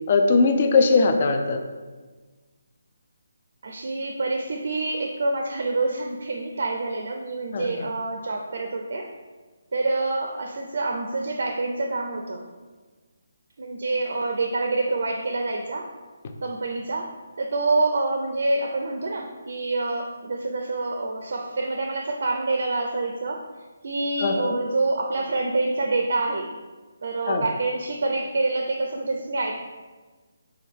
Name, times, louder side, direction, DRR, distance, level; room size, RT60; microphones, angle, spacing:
voice 1, 0.1-1.6 7.5-7.7 24.2-24.6 27.3-27.5, left 4 dB, 30° left, 5 dB, 0.4 m, -20 dB
voice 2, 3.6-9.1 9.7-12.4 13.6-15.9 16.4-17.1 17.4-23.4 23.8-26.5 27.0-29.6, right 2 dB, 55° right, 2 dB, 0.4 m, -27 dB
6.1 x 2.2 x 3.4 m, 1.3 s
hypercardioid pair, 175°, 0 cm